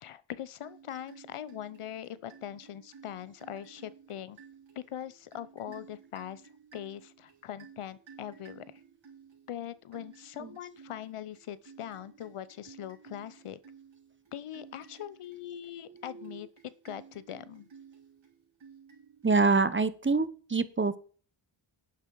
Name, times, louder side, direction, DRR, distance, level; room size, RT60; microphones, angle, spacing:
voice 1, 0.0-4.4 4.8-8.6 9.5-13.6 14.3-17.7, left 10 dB, 85° left, 17 dB, 0.8 m, -42 dB
sound 1, 0.6-19.8, right 6 dB, 65° right, 4.8 m, -55 dB
voice 2, 15.9-16.4 19.2-21.0, right 4 dB, 25° right, 14 dB, 0.8 m, -27 dB
10.5 x 9.4 x 4.7 m, 0.41 s
wide cardioid pair, 125°, 50 cm